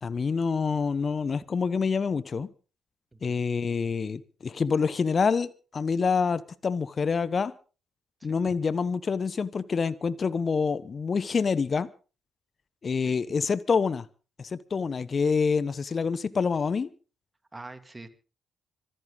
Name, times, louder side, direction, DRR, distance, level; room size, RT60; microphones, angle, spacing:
voice 1, 0.0-2.5 3.2-7.5 8.2-11.9 12.8-14.1 14.4-16.9, left 5 dB, 45° left, 17 dB, 1.1 m, -27 dB
voice 2, 3.1-3.4 8.2-8.5 13.0-13.2 17.5-18.1, right 2 dB, 20° right, 9 dB, 2.7 m, -45 dB
25.5 x 11.0 x 4.0 m, 0.37 s
hypercardioid pair, 45°, 0 cm